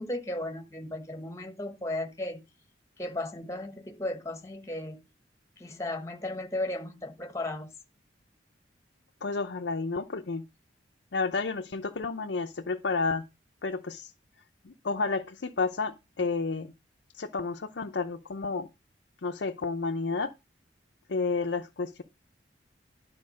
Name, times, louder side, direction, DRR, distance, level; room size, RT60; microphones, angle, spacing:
voice 1, 0.0-2.4 3.0-5.0 5.6-7.7, left 1 dB, 15° left, 1.1 m, -35 dB
voice 2, 9.2-10.4 11.1-13.2 13.6-14.1 14.6-16.7 17.2-18.7 19.2-20.3 21.1-22.0, left 4 dB, 70° left, 0.6 m, -31 dB
11.0 x 4.5 x 6.3 m
head